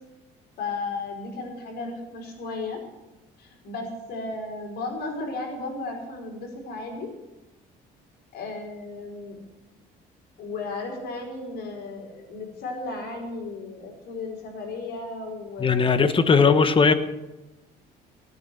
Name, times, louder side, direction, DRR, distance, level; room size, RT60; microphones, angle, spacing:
voice 1, 0.6-2.8 3.4-7.1 8.3-9.4 10.4-16.1, left 3 dB, 70° left, 5.4 m, -34 dB
voice 2, 15.6-16.9, left 5 dB, 30° left, 1.3 m, -18 dB
18.5 x 9.5 x 8.0 m
cardioid pair, 110°, 17 cm